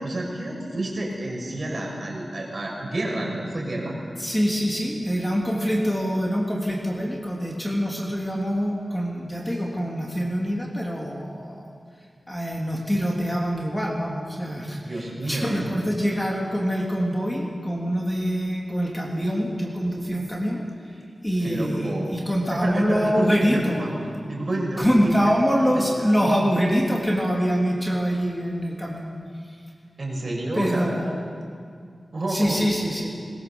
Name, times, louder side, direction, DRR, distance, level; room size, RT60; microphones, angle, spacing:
voice 1, 0.0-3.9 14.8-15.6 21.4-22.2 22.5-23.9 24.3-25.3 25.6-25.9 30.0-30.9 32.1-32.7, right 1 dB, 50° right, 0 dB, 6.0 m, -29 dB
voice 2, 4.2-11.6 12.3-20.6 20.9-23.8 24.8-29.1 30.5-31.1 32.3-33.1, equal, 10° left, -2 dB, 3.2 m, -25 dB
22.0 x 20.5 x 7.2 m, 2.2 s
wide cardioid pair, 75°, 0 cm